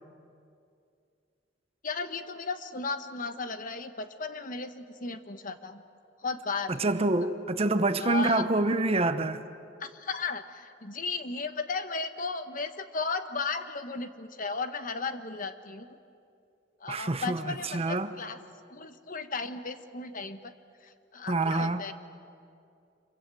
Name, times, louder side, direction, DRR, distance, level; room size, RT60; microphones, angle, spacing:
voice 1, 1.8-5.8 6.2-6.7 7.2-7.3 8.0-8.5 9.8-15.9 16.8-18.4 18.7-20.5 20.8-21.9, left 4 dB, 50° left, 1.1 m, -35 dB
voice 2, 6.8-9.4 16.9-18.1 21.3-21.8, right 2 dB, 35° right, 0.9 m, -27 dB
26.5 x 24.0 x 7.6 m
head